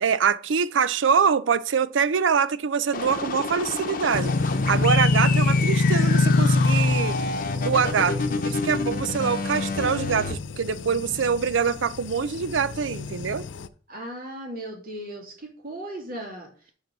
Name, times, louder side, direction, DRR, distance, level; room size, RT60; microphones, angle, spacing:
voice 1, 0.0-7.2 7.6-13.4, right 6 dB, 85° right, 0.5 m, -24 dB
sound 1, 2.9-10.3, left 4 dB, 50° left, 0.9 m, -30 dB
sound 2, 4.1-13.7, left 3 dB, 75° left, 0.5 m, -25 dB
voice 2, 9.0-9.4 13.9-16.5, right 1 dB, 50° right, 2.9 m, -37 dB
5.8 x 5.2 x 6.0 m
head